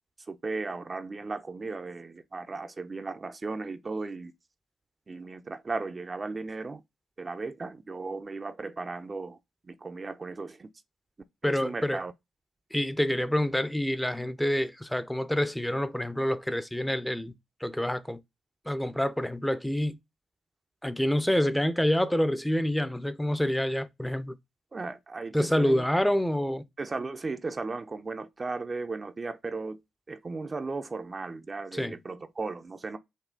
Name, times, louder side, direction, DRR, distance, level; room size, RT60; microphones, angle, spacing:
voice 1, 0.3-4.3 5.1-6.8 7.2-9.4 9.6-10.7 11.4-12.1 24.7-25.8 26.8-29.8 30.1-33.0, right 3 dB, 40° right, 0.5 m, -36 dB
voice 2, 11.4-12.0 12.7-17.3 17.6-18.2 18.7-20.0 20.8-24.3 25.3-26.6 31.7-31.9, equal, 5° left, 0.6 m, -27 dB
5.4 x 2.2 x 3.8 m
hypercardioid pair, 45°, 0 cm